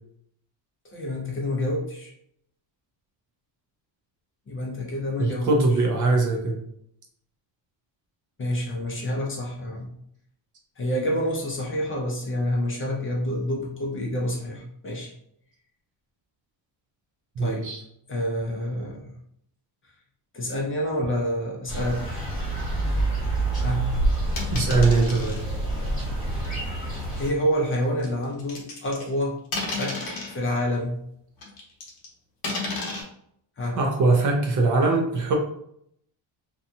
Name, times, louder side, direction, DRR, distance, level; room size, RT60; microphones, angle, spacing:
voice 1, 0.8-2.1 4.5-5.5 8.4-9.9 10.8-15.1 17.4-17.7 18.1-19.1 20.3-22.2 23.6-23.9 26.4-26.5 27.2-29.4 29.7-31.0 33.6-33.8, equal, 25° left, -1 dB, 0.5 m, -28 dB
voice 2, 5.2-6.6 17.4-17.8 24.5-25.4 33.8-35.3, right 3 dB, 40° right, 1 dB, 0.5 m, -22 dB
sound 1, 21.7-27.3, right 2 dB, ahead, 1.3 m, -27 dB
sound 2, 24.4-25.4 26.4-26.6 28.0-29.1 29.5-30.4 31.4-32.1 32.4-33.0, left 3 dB, 45° left, 0.9 m, -32 dB
2.7 x 2.2 x 2.6 m, 0.71 s
cardioid pair, 140°, 48 cm